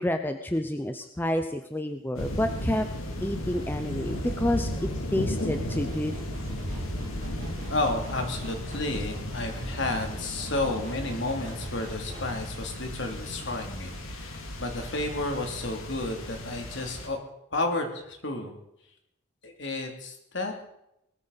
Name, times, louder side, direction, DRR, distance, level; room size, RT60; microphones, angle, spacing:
voice 1, 0.0-2.8 3.2-6.1, left 1 dB, 10° left, 7 dB, 0.7 m, -29 dB
sound 1, 2.1-17.1, left 1 dB, 80° left, 2.8 m, -35 dB
sound 2, 5.5-12.4, right 1 dB, 40° right, 3.6 m, -43 dB
voice 2, 7.7-17.2 17.5-18.5 19.4-20.7, left 2 dB, 60° left, 3 dB, 3.0 m, -31 dB
20.5 x 14.0 x 4.2 m, 0.79 s
head